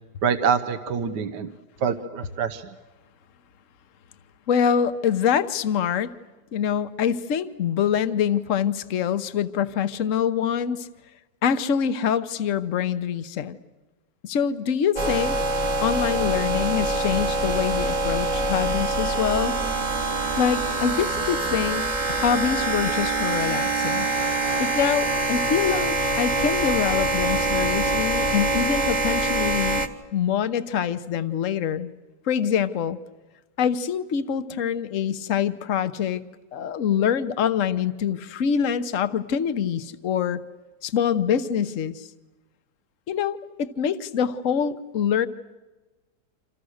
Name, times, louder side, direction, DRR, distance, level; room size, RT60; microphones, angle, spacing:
voice 1, 0.2-1.5 1.8-2.7, right 6 dB, 85° right, 10 dB, 1.7 m, -25 dB
voice 2, 4.5-6.1 6.5-10.9 11.4-13.6 14.2-15.4 15.8-19.5 20.4-21.8 22.1-24.1 24.6-29.9 30.1-31.9 32.3-33.0 33.6-36.2 36.5-40.4 40.8-42.0 43.1-45.3, left 8 dB, 55° left, 12 dB, 1.3 m, -25 dB
sound 1, 15.0-29.9, right 2 dB, 30° right, 1.4 m, -25 dB
28.5 x 27.0 x 6.5 m, 1.2 s
omnidirectional pair, 1.8 m